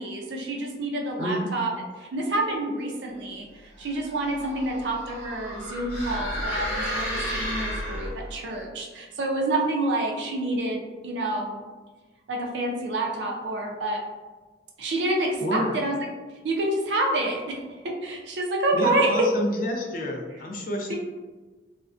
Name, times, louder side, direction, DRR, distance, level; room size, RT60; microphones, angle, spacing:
voice 1, 0.0-1.7 2.0-11.6 12.3-14.0 14.8-16.0 16.4-17.6 17.8-19.3 20.9-21.0, right 2 dB, 75° right, 0 dB, 0.4 m, -28 dB
sound 1, 3.9-8.4, equal, 5° right, 1.1 m, -32 dB
voice 2, 15.4-15.7 18.7-20.9, left 1 dB, 50° left, 1 dB, 0.4 m, -28 dB
2.4 x 2.1 x 2.4 m, 1.3 s
head